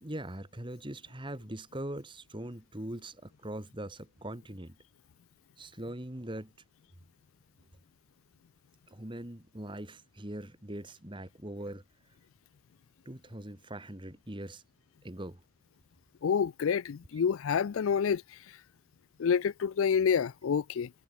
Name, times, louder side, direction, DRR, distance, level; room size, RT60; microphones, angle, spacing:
voice 1, 0.0-4.8 5.6-6.5 8.9-11.8 13.1-14.6 15.0-15.4, right 1 dB, 25° right, 2.0 m, -41 dB
voice 2, 16.2-18.2 19.2-20.9, left 6 dB, 70° left, 0.4 m, -28 dB
head